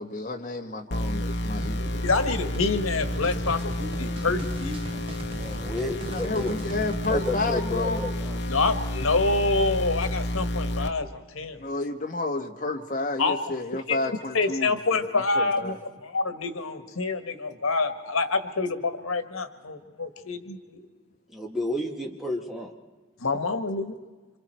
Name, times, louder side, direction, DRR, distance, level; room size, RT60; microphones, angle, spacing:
voice 1, 0.0-2.0 6.0-8.1 11.6-15.8, left 2 dB, 40° left, 3 dB, 1.6 m, -31 dB
sound 1, 0.9-10.9, left 1 dB, 55° left, 1.2 m, -30 dB
sound 2, 1.6-7.2, right 1 dB, 25° right, 0.6 m, -39 dB
voice 2, 2.0-4.7 8.5-11.6 13.2-13.4 13.9-14.0 14.3-15.7 16.0-20.8 23.2-23.9, left 3 dB, 90° left, 8 dB, 1.5 m, -27 dB
voice 3, 5.3-6.6 7.1-8.4 21.3-22.7, left 1 dB, ahead, 0 dB, 1.9 m, -31 dB
27.0 x 26.5 x 4.5 m, 1.3 s
head